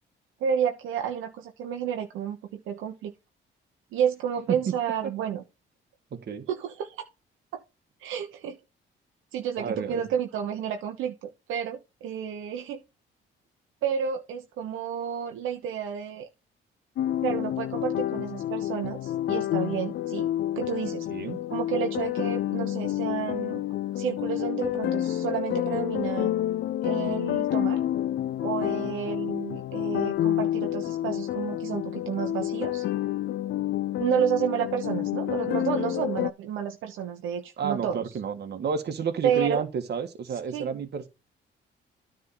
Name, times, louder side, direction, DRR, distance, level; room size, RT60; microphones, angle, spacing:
voice 1, 0.4-3.1 3.9-5.4 6.5-6.9 8.0-8.6 9.3-12.8 13.8-16.3 17.2-20.3 20.5-21.1 21.5-23.6 24.0-26.3 26.8-27.8 28.4-32.8 34.0-38.0 39.2-39.6 40.5-40.7, right 8 dB, 90° right, 1.1 m, -30 dB
voice 2, 6.1-6.5 9.6-10.1 21.1-21.4 37.6-41.1, right 6 dB, 55° right, 1.7 m, -31 dB
sound 1, 17.0-36.3, left 12 dB, 60° left, 0.4 m, -29 dB
9.8 x 3.8 x 5.6 m
cardioid pair, 90°, 20 cm